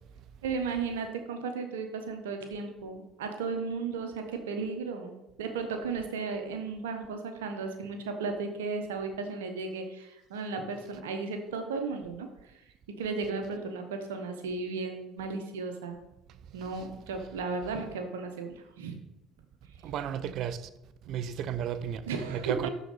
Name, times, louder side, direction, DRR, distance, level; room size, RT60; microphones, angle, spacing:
voice 1, 0.4-12.3 13.0-16.0 16.5-18.9 22.1-22.7, right 4 dB, 75° right, 1.1 m, -35 dB
voice 2, 19.8-20.7 21.1-22.7, right 9 dB, 55° right, 0.5 m, -34 dB
12.0 x 4.1 x 4.1 m
figure-of-eight pair, 60°, 0 cm